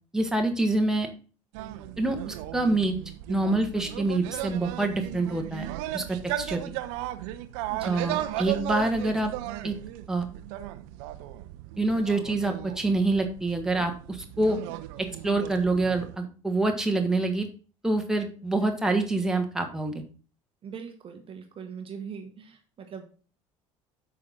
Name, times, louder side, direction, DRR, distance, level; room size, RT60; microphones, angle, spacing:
voice 1, 0.1-1.1 2.0-3.0 3.3-6.7 7.8-9.3 9.6-9.8 10.1-10.3 11.8-14.6 15.2-17.5 17.8-20.0, right 2 dB, 5° right, 3 dB, 1.7 m, -26 dB
sound 1, 1.5-16.2, right 14 dB, 55° right, 0.9 m, -36 dB
voice 2, 7.7-8.3 20.6-23.1, right 6 dB, 35° right, 5 dB, 1.3 m, -41 dB
8.6 x 6.3 x 3.9 m, 0.36 s
figure-of-eight pair, 65°, 17 cm